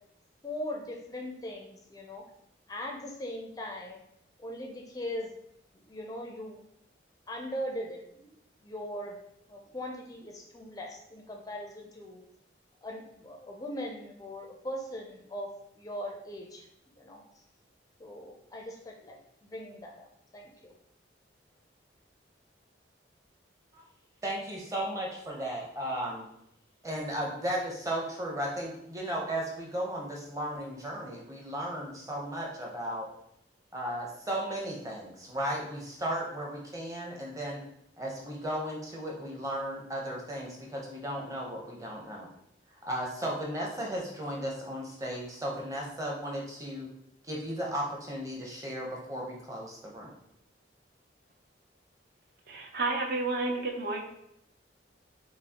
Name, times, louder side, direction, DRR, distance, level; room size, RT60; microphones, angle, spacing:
voice 1, 0.4-2.2 2.7-4.0 4.4-5.3 5.7-6.6 7.3-8.2 8.6-9.2 9.5-12.2 12.8-16.7 17.0-17.2 18.0-20.1 20.3-20.7, equal, 20° left, 1 dB, 0.4 m, -40 dB
voice 2, 24.2-26.2 26.8-33.1 33.7-37.6 38.0-42.3 42.7-46.9 47.2-50.1, right 1 dB, 20° right, -2 dB, 0.8 m, -35 dB
voice 3, 52.5-54.0, right 3 dB, 55° right, 2 dB, 0.5 m, -31 dB
6.0 x 2.4 x 2.8 m, 0.77 s
head